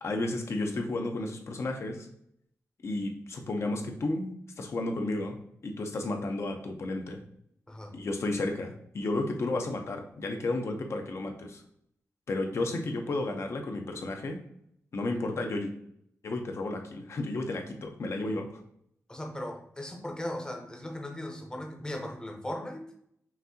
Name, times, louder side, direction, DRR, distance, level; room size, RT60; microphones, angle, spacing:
voice 1, 0.0-2.1 2.8-5.4 5.6-7.2 7.9-11.6 12.3-14.4 14.9-15.7 16.2-18.6, left 2 dB, 55° left, 4 dB, 0.7 m, -32 dB
voice 2, 19.1-22.8, left 1 dB, 15° left, 2 dB, 0.8 m, -38 dB
5.8 x 2.7 x 2.8 m, 0.72 s
wide cardioid pair, 110°, 6 cm